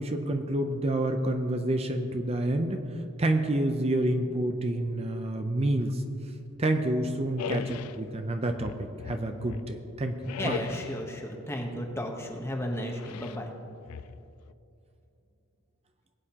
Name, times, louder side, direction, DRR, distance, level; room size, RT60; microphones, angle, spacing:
voice 1, 0.0-2.9 3.2-6.0 6.6-10.6, right 1 dB, 30° right, 6 dB, 0.6 m, -28 dB
sound 1, 7.4-8.0 8.6-9.7 10.2-11.1 13.0-13.4 13.9-14.5, left 8 dB, 75° left, 0.3 m, -39 dB
voice 2, 10.4-13.5, equal, 10° left, 2 dB, 1.1 m, -34 dB
20.0 x 8.8 x 2.9 m, 2.7 s
head